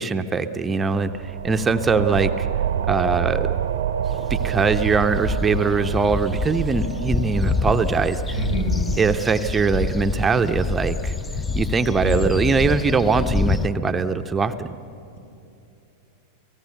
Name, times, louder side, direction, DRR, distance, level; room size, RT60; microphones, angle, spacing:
voice 1, 0.0-2.5 2.9-3.5 4.3-8.2 9.0-11.1 11.6-14.7, right 4 dB, 15° right, 8 dB, 0.8 m, -22 dB
sound 1, 0.9-12.1, right 9 dB, 65° right, 0.8 m, -29 dB
sound 2, 4.0-13.7, left 3 dB, 15° left, 0.6 m, -27 dB
voice 2, 8.3-8.8 12.0-12.4, right 1 dB, 70° left, 3 dB, 4.3 m, -27 dB
29.5 x 18.5 x 7.0 m, 2.8 s
figure-of-eight pair, 90°, 0 cm